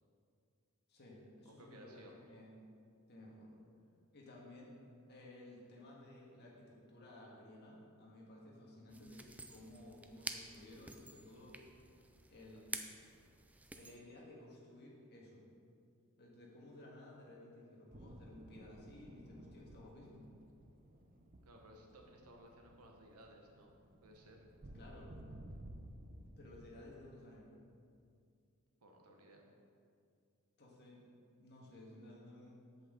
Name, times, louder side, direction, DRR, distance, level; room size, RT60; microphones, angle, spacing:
voice 1, 0.9-2.5 3.1-3.5 4.1-4.7 5.1-9.2 9.5-11.6 12.3-12.7 13.8-15.4 16.2-20.2 24.7-25.1 26.4-27.5 30.6-31.0 31.4-32.6, left 1 dB, 50° left, -3 dB, 1.7 m, -56 dB
voice 2, 1.4-2.2 12.5-12.6 21.4-24.4 28.8-29.4, right 1 dB, 80° right, 1 dB, 1.2 m, -59 dB
sound 1, 8.9-14.0, right 2 dB, 5° right, 0.3 m, -49 dB
sound 2, 17.9-26.9, right 1 dB, 40° right, 0.6 m, -55 dB
8.3 x 7.4 x 3.9 m, 2.3 s
head